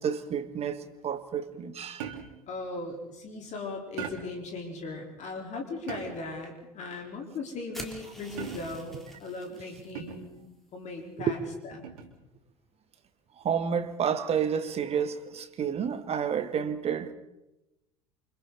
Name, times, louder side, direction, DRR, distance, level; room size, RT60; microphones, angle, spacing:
voice 1, 0.0-2.2 11.2-11.3 13.4-17.1, right 7 dB, 30° right, 1.8 m, -30 dB
sound 1, 2.0-2.5 4.0-4.5 5.9-6.4 8.4-8.9 9.9-10.4 11.8-12.2, right 8 dB, 55° right, 2.9 m, -40 dB
voice 2, 2.5-10.3 10.7-11.9, left 3 dB, 40° left, 4.2 m, -38 dB
sound 2, 7.7-9.9, equal, ahead, 3.5 m, -46 dB
28.5 x 25.5 x 4.1 m
figure-of-eight pair, 70°, 19 cm